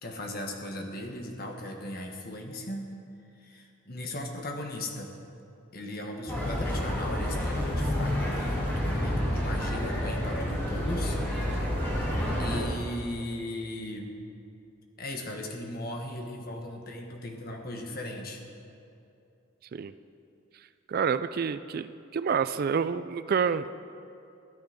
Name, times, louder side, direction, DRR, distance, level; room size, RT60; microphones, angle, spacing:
voice 1, 0.0-2.8 3.3-5.1 5.7-11.2 12.4-14.1 15.0-18.4, left 1 dB, 45° left, 2 dB, 1.4 m, -37 dB
sound 1, 6.3-12.7, equal, 10° left, 2.8 m, -29 dB
voice 2, 20.9-23.8, right 6 dB, 45° right, 13 dB, 0.3 m, -28 dB
13.5 x 10.5 x 5.1 m, 2.7 s
head